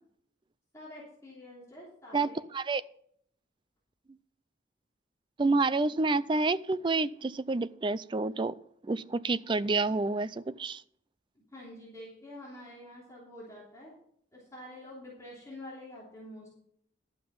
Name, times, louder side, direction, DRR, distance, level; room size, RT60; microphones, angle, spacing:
voice 1, 0.7-2.4 11.3-14.0 14.3-16.5, left 1 dB, 15° left, -6 dB, 3.1 m, -47 dB
voice 2, 2.1-2.8 5.4-8.6 8.8-10.8, right 3 dB, 25° right, 16 dB, 0.3 m, -29 dB
11.5 x 7.7 x 5.4 m, 0.66 s
head